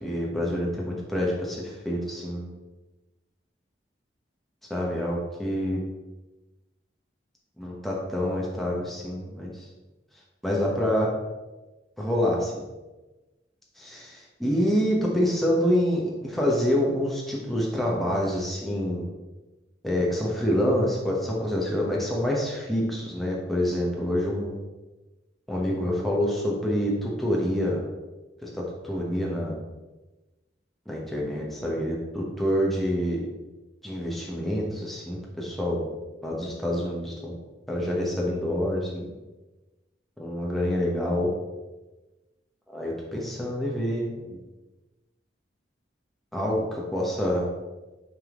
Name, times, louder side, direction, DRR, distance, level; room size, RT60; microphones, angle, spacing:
voice 1, 0.0-2.5 4.7-5.8 7.6-9.7 10.4-11.1 12.0-12.6 13.8-14.0 14.4-19.1 19.8-24.6 25.5-27.8 28.4-29.5 30.9-33.2 33.8-35.9 36.2-37.4 37.7-39.1 40.2-41.3 42.7-44.4 46.3-47.5, equal, ahead, -4 dB, 1.2 m, -27 dB
9.0 x 3.7 x 3.8 m, 1.1 s
head